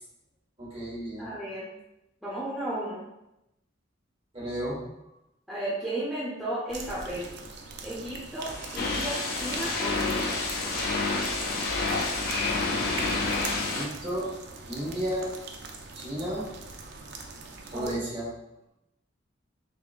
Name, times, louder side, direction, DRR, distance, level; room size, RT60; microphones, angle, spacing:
voice 1, 0.6-1.3 4.3-4.8 13.5-14.3 14.7-15.3 15.9-16.4 17.7-18.2, right 1 dB, 30° right, -7 dB, 1.3 m, -33 dB
voice 2, 1.2-1.7 2.2-3.0 5.5-7.3 7.8-10.3 17.7-17.9, right 1 dB, ahead, -10 dB, 0.7 m, -34 dB
sound 1, 6.7-18.0, right 3 dB, 60° right, 0.4 m, -42 dB
sound 2, 8.4-13.6, equal, 25° left, 1.4 m, -41 dB
sound 3, 8.8-13.8, left 3 dB, 55° left, 0.5 m, -29 dB
3.6 x 2.9 x 2.4 m, 0.88 s
head